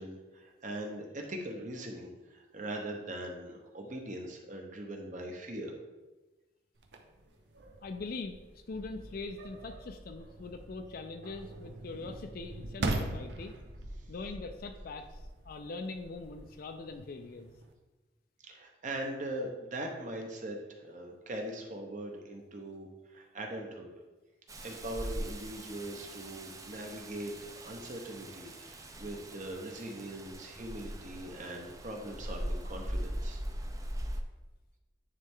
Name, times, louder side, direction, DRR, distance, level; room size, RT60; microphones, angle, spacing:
voice 1, 0.0-5.7 18.4-23.9 24.6-33.4, right 1 dB, 45° right, 2 dB, 1.0 m, -41 dB
sound 1, 6.8-17.7, right 2 dB, 85° right, 0.7 m, -42 dB
voice 2, 7.8-8.4 8.7-13.5 14.1-17.5, left 3 dB, 55° left, 7 dB, 0.4 m, -42 dB
Rain, 24.5-34.2, right 1 dB, 20° right, 0.5 m, -40 dB
9.7 x 3.3 x 3.6 m, 1.2 s
head